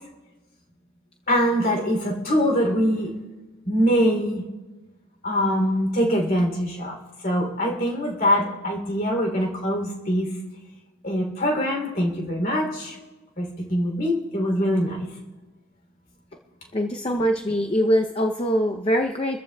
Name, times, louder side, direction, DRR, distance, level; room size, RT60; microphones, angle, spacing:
voice 1, 1.3-3.2 3.6-4.4 5.2-7.0 7.2-10.3 11.0-13.0 13.4-15.2, equal, 45° left, 1 dB, 3.0 m, -23 dB
voice 2, 16.7-19.4, equal, 25° left, 3 dB, 0.6 m, -23 dB
27.0 x 14.5 x 2.3 m, 1.2 s
head